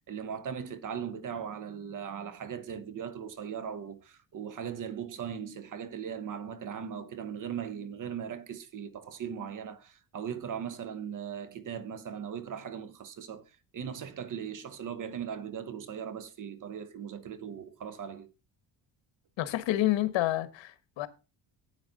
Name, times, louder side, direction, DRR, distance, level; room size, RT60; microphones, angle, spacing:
voice 1, 0.0-18.3, right 8 dB, 45° right, 1.0 m, -39 dB
voice 2, 19.4-21.1, left 14 dB, 75° left, 1.3 m, -29 dB
9.4 x 9.0 x 4.0 m
cardioid pair, 130°, 45 cm